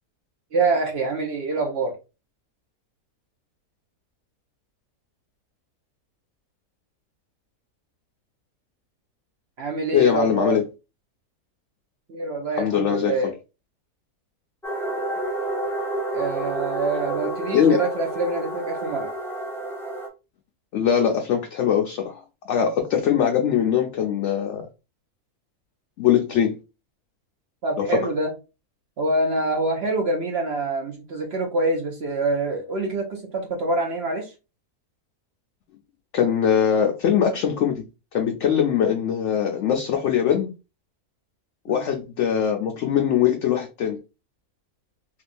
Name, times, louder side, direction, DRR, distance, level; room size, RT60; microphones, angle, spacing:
voice 1, 0.5-2.0 9.6-10.6 12.1-13.3 16.1-19.1 27.6-28.3 29.0-34.3 41.7-41.9, right 2 dB, 55° right, 0.8 m, -25 dB
voice 2, 9.9-10.6 12.5-13.2 17.5-17.8 20.7-24.7 26.0-26.6 27.8-28.0 36.1-37.9 38.1-40.5 41.7-44.0, left 8 dB, 65° left, 0.8 m, -21 dB
sound 1, 14.6-20.1, right 1 dB, 5° left, 0.5 m, -29 dB
3.5 x 2.9 x 2.5 m
omnidirectional pair, 1.6 m